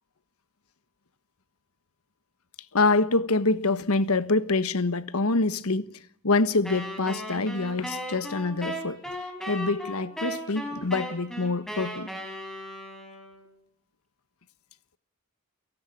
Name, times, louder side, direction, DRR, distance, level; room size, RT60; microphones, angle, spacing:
voice 1, 2.7-5.9 6.2-9.0 9.5-12.1, left 3 dB, 75° left, 1.3 m, -25 dB
Wind instrument woodwind instrument, 6.6-13.5, equal, ahead, 6.3 m, -36 dB
30.0 x 17.5 x 9.4 m
head